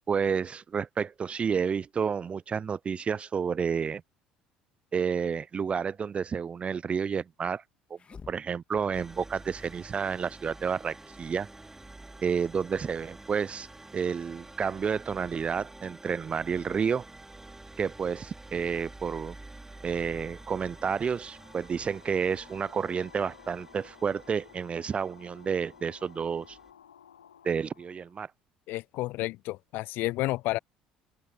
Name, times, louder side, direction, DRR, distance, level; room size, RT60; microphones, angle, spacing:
voice 1, 0.1-4.0 4.9-7.6 7.9-8.0 8.3-11.5 12.2-13.7 13.9-17.1 17.8-19.4 19.8-26.6 27.4-28.3, right 6 dB, 30° right, 0.4 m, -30 dB
sound 1, 6.4-6.5 7.9-9.2 9.5-10.4 10.7-10.8 11.0-12.3 13.6-14.4, left 5 dB, 30° left, 2.5 m, -53 dB
sound 2, 8.9-26.7, right 2 dB, 10° right, 5.3 m, -49 dB
sound 3, 19.8-28.2, left 9 dB, 80° left, 6.1 m, -56 dB
voice 2, 28.7-30.6, left 19 dB, 55° left, 0.5 m, -31 dB
open air
figure-of-eight pair, 60°, 4 cm